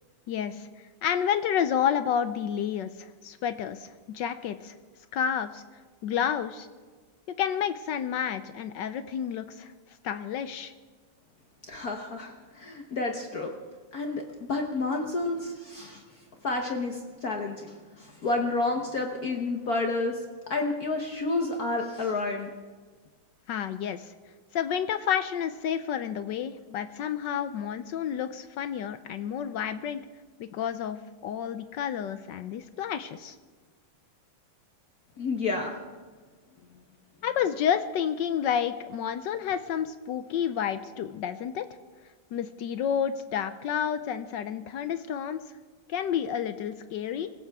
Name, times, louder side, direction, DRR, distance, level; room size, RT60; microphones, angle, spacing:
voice 1, 0.3-0.7 1.0-4.8 5.1-5.6 6.0-6.7 7.4-9.7 10.0-10.7 23.5-24.1 24.5-30.0 30.4-33.4 37.2-41.7 42.3-45.4 45.9-47.3, left 8 dB, 70° left, 11 dB, 1.2 m, -30 dB
voice 2, 11.7-13.5 13.9-16.0 16.4-22.5 35.2-35.8, left 3 dB, 50° left, 3 dB, 1.4 m, -30 dB
24.5 x 15.5 x 3.5 m, 1.5 s
omnidirectional pair, 2.3 m